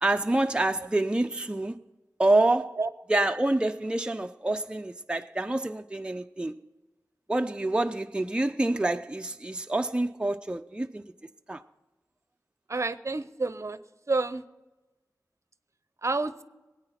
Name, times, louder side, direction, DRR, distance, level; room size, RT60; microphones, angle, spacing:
voice 1, 0.0-1.8 2.2-2.8 3.1-6.5 7.3-11.0 11.5-11.6, right 2 dB, 15° right, 0.5 m, -27 dB
voice 2, 12.7-13.8 14.1-14.4 16.0-16.4, right 3 dB, 50° right, 0.7 m, -29 dB
20.5 x 9.0 x 5.8 m
wide cardioid pair, 50°, 7 cm